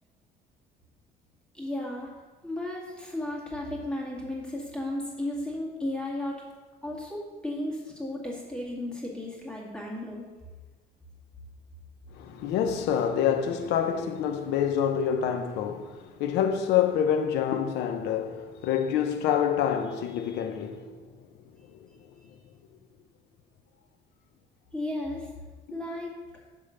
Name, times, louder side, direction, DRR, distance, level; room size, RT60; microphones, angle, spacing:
voice 1, 1.5-2.1 2.4-6.4 6.8-10.2 24.7-25.3 25.7-26.1, left 1 dB, 5° left, 2.3 m, -34 dB
voice 2, 12.1-20.9 25.7-25.8, left 8 dB, 85° left, 0.8 m, -27 dB
10.0 x 3.7 x 6.6 m
cardioid pair, 110°, 17 cm